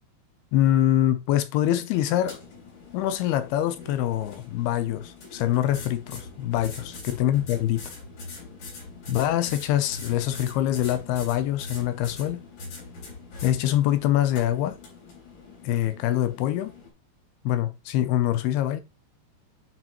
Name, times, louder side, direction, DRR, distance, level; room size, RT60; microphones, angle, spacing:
voice 1, 0.5-2.4 2.9-7.9 9.1-12.4 13.4-14.8 15.6-16.7 17.5-18.8, left 12 dB, 80° left, 2.5 m, -24 dB
sound 1, 2.1-16.9, left 3 dB, 50° left, 4.6 m, -43 dB
9.3 x 6.1 x 3.0 m
omnidirectional pair, 4.9 m